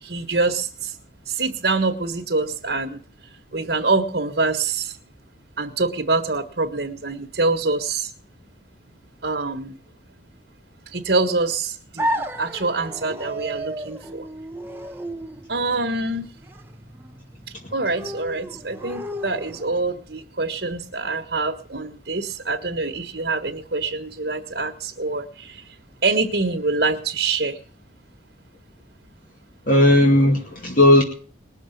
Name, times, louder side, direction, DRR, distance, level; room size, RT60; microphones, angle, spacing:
voice 1, 0.0-0.9 1.3-3.0 3.5-4.9 5.6-8.1 9.2-9.7 10.9-14.3 15.5-16.3 17.7-25.5 26.0-27.6, right 3 dB, 65° right, 4 dB, 1.6 m, -25 dB
sound 1, 12.0-19.9, equal, 10° right, 1.0 m, -33 dB
voice 2, 29.7-31.0, left 1 dB, 50° left, 0 dB, 2.3 m, -15 dB
20.5 x 7.0 x 9.3 m, 0.43 s
head